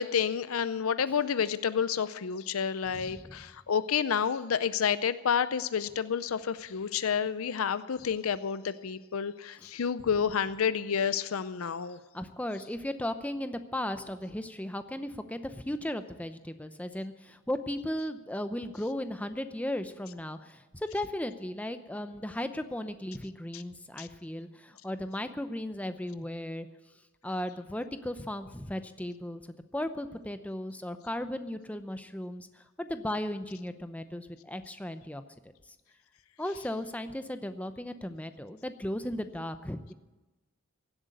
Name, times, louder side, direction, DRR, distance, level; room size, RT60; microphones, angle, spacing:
voice 1, 0.0-12.0 23.5-23.6 24.0-24.1, left 7 dB, 75° left, 14 dB, 0.5 m, -29 dB
voice 2, 12.1-26.7 27.2-29.4 29.7-35.2 36.4-39.9, left 1 dB, 5° left, 9 dB, 0.6 m, -36 dB
16.5 x 8.0 x 9.3 m, 1.1 s
head